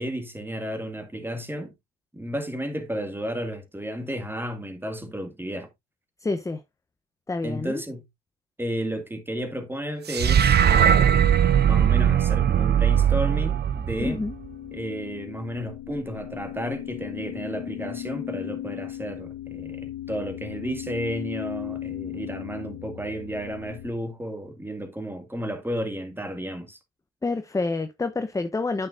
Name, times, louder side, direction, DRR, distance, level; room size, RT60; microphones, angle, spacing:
voice 1, 0.0-1.7 2.1-5.7 7.4-8.0 8.6-11.3 11.6-14.2 14.7-26.8, equal, 5° right, 2.0 m, -32 dB
voice 2, 6.2-6.6 7.3-7.8 14.0-14.3 27.2-28.9, left 3 dB, 10° left, 0.8 m, -28 dB
sound 1, 10.1-14.5, right 9 dB, 30° right, 0.7 m, -20 dB
sound 2, 13.8-23.9, left 12 dB, 45° left, 1.0 m, -37 dB
8.5 x 6.9 x 2.5 m
supercardioid pair, 85°, 33 cm